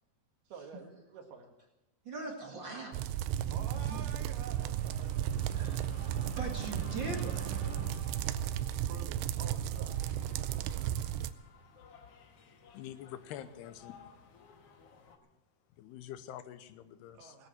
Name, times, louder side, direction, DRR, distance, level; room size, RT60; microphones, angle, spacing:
voice 1, 0.5-1.5 3.5-5.1 5.6-5.8 8.9-10.1 10.4-10.9 17.1-17.5, right 5 dB, 70° right, 3 dB, 3.7 m, -49 dB
voice 2, 2.1-3.0 3.9-4.1 5.5-7.6, right 2 dB, 40° right, 1 dB, 1.7 m, -41 dB
sound 1, 2.9-11.3, right 11 dB, 90° right, 2.8 m, -34 dB
sound 2, 3.5-8.5, equal, 15° right, 2.7 m, -50 dB
sound 3, 5.7-15.2, left 5 dB, 60° left, 1.6 m, -55 dB
voice 3, 12.7-14.0 15.8-17.4, left 11 dB, 90° left, 12 dB, 2.9 m, -46 dB
18.0 x 9.9 x 7.9 m, 0.92 s
omnidirectional pair, 4.7 m